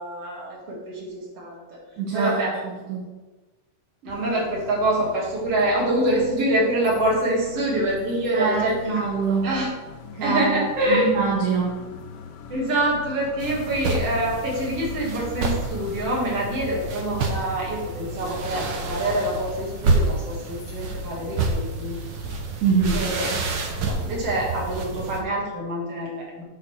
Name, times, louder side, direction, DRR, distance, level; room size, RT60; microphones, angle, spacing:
voice 1, 0.0-1.6 2.1-2.5 4.0-9.0 9.4-9.7 10.2-11.1 12.5-22.0 22.9-23.3 23.9-26.4, right 1 dB, 50° right, -4 dB, 3.4 m, -25 dB
voice 2, 2.0-3.2 8.3-9.6 10.1-12.0 22.6-23.1, right 5 dB, 70° right, -2 dB, 2.5 m, -25 dB
sound 1, 4.1-21.8, left 5 dB, 90° left, 2.3 m, -43 dB
sound 2, 13.4-25.2, right 3 dB, 85° right, 0.9 m, -28 dB
8.7 x 4.5 x 6.5 m, 1.2 s
omnidirectional pair, 3.7 m